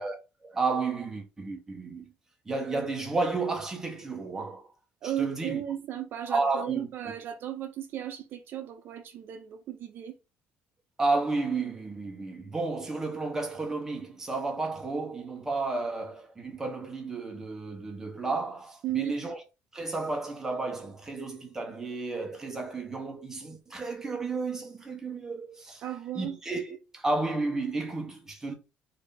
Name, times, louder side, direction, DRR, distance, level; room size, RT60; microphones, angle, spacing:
voice 1, 0.0-2.1 2.5-4.7 5.0-5.6 6.3-6.9 11.0-19.4 19.7-25.8 26.1-28.5, right 3 dB, 10° right, 0.9 m, -32 dB
voice 2, 5.0-10.2 18.8-19.1 25.8-26.4, right 11 dB, 55° right, 0.5 m, -35 dB
3.2 x 2.6 x 3.7 m
cardioid pair, 145°, 4 cm